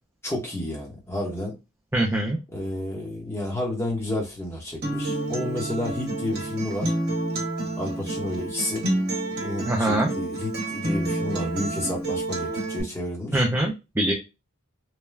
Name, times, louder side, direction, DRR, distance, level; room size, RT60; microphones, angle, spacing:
voice 1, 0.2-1.5 2.5-6.9 7.8-8.9 9.3-13.4, left 1 dB, 10° left, 0.9 m, -31 dB
voice 2, 1.9-2.4 9.7-10.1 13.3-14.1, right 1 dB, 10° right, 0.4 m, -23 dB
Acoustic guitar, 4.8-12.8, right 1 dB, 50° right, 1.1 m, -29 dB
3.2 x 2.2 x 2.3 m
head